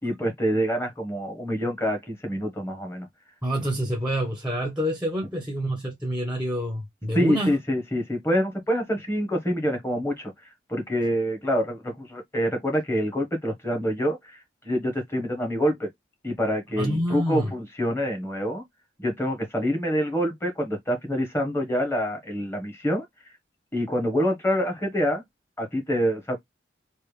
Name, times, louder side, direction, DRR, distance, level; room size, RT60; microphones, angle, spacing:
voice 1, 0.0-3.1 7.1-10.3 10.7-15.9 16.2-18.6 19.0-23.0 23.7-25.2 25.6-26.4, equal, 15° left, 1.2 m, -26 dB
voice 2, 3.4-7.5 16.8-17.5, equal, 5° right, 0.9 m, -27 dB
3.4 x 2.6 x 3.2 m
head